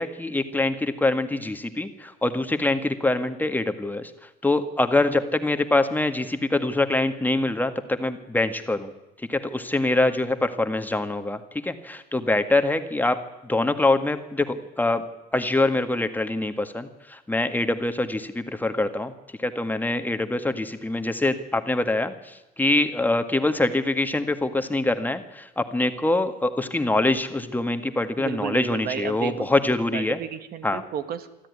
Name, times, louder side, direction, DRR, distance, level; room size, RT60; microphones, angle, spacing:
voice 1, 0.0-4.1 4.4-8.9 9.2-13.2 13.4-15.0 15.3-19.1 19.4-30.2 30.6-30.8, left 2 dB, 10° left, 8 dB, 1.8 m, -24 dB
voice 2, 28.2-29.5 29.9-31.5, right 9 dB, 65° right, 11 dB, 1.7 m, -33 dB
24.5 x 14.0 x 9.8 m, 1.0 s
cardioid pair, 110°, 17 cm